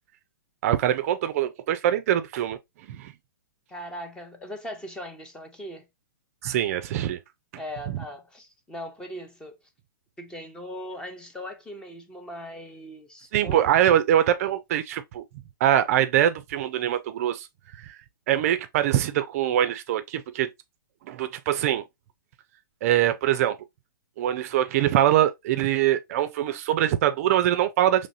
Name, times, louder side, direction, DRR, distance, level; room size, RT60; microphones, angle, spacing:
voice 1, 0.6-2.6 2.9-3.1 6.4-7.2 13.3-15.2 15.6-17.5 17.8-18.0 18.3-20.5 21.1-21.8 22.8-23.6 24.2-28.1, right 11 dB, 45° right, 0.4 m, -23 dB
voice 2, 3.7-5.9 7.6-9.6 10.2-13.7, equal, 10° left, 0.6 m, -39 dB
4.0 x 3.1 x 2.5 m
hypercardioid pair, 140°, 11 cm